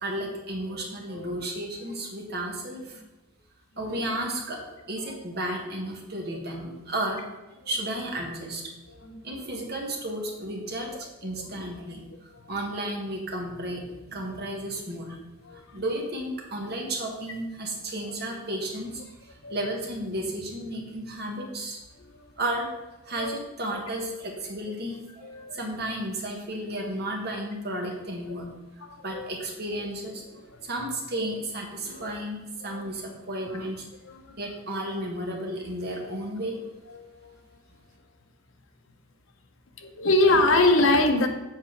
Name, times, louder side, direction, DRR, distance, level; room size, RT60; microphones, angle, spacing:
voice 1, 0.0-3.0 3.8-4.6 4.9-7.2 7.6-8.7 9.2-12.0 12.5-13.8 14.1-15.2 15.5-21.8 22.4-22.7 23.0-28.4 29.0-33.9 34.4-36.6, right 1 dB, 50° right, 0 dB, 1.4 m, -33 dB
voice 2, 15.4-15.8 18.0-18.1 19.4-19.5 22.1-22.2 23.2-23.4 23.7-23.8 25.2-25.6 28.8-29.3 32.0-32.2 32.6-32.9 33.4-33.5 34.1-34.4 36.9-37.3 39.8-41.3, left 2 dB, 80° left, 5 dB, 0.8 m, -25 dB
7.6 x 4.2 x 5.1 m, 1.0 s
head